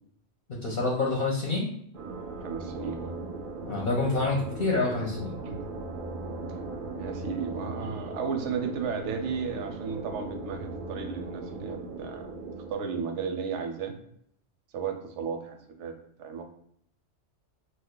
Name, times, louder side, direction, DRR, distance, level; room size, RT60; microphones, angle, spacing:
voice 1, 0.5-1.7 3.6-5.4, left 3 dB, 50° left, -2 dB, 0.7 m, -27 dB
sound 1, 1.9-12.7, right 3 dB, 55° right, 0.6 m, -39 dB
voice 2, 2.4-3.2 4.9-5.0 5.4-5.6 7.0-12.3 12.7-13.9 14.7-15.9 16.2-16.4, right 6 dB, 85° right, 5 dB, 0.9 m, -34 dB
2.5 x 2.3 x 3.7 m, 0.70 s
omnidirectional pair, 1.2 m